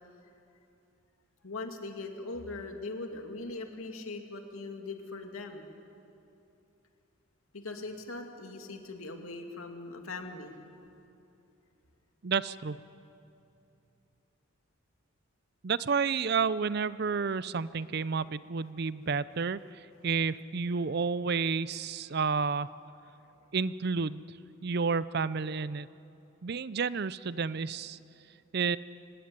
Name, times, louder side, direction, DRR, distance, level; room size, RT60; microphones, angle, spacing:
voice 1, 1.4-5.7 7.5-10.5, left 3 dB, 85° left, 4 dB, 2.5 m, -40 dB
voice 2, 12.2-12.8 15.6-22.7 23.5-24.4 24.6-25.9 26.4-28.0 28.5-28.8, right 5 dB, 50° right, 17 dB, 0.5 m, -30 dB
24.0 x 19.0 x 9.7 m, 2.8 s
head